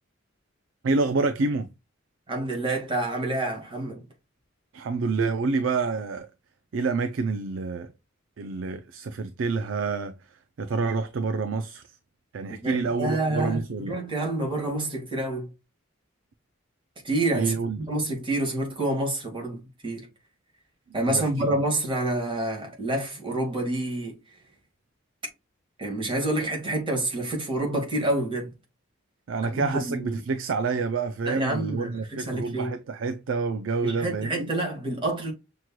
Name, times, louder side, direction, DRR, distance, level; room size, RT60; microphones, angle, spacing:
voice 1, 0.8-1.7 4.7-6.3 6.7-7.9 8.4-10.1 10.6-11.8 12.3-14.0 17.3-17.8 21.1-21.3 29.3-34.5, right 4 dB, 70° right, 0.4 m, -28 dB
voice 2, 2.3-4.0 12.5-15.5 17.0-20.1 20.9-24.1 25.8-28.5 29.5-30.2 31.2-32.7 33.8-35.3, right 1 dB, 25° right, 1.8 m, -28 dB
6.2 x 2.9 x 2.2 m
head